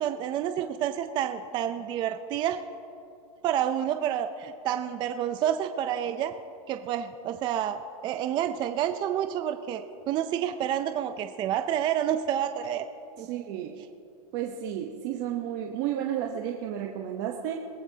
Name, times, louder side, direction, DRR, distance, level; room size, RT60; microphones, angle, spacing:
voice 1, 0.0-2.6 3.4-6.3 6.7-7.8 8.0-12.9 13.2-13.3, right 10 dB, 25° right, 8 dB, 0.4 m, -29 dB
voice 2, 13.2-13.9 14.3-17.6, right 10 dB, 45° right, 1 dB, 0.9 m, -32 dB
22.5 x 15.0 x 2.8 m, 2.5 s
supercardioid pair, 150°, 19 cm